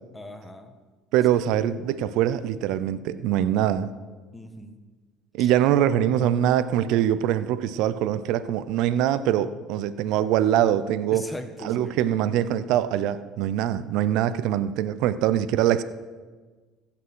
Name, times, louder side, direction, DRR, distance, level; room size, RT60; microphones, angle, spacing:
voice 1, 0.1-0.8 4.3-4.8 5.4-5.5 11.1-12.0, left 1 dB, 10° left, 6 dB, 1.5 m, -39 dB
voice 2, 1.1-3.9 5.3-11.3 11.6-15.8, right 11 dB, 70° right, 15 dB, 0.6 m, -23 dB
15.5 x 5.9 x 6.3 m, 1.4 s
hypercardioid pair, 75°, 0 cm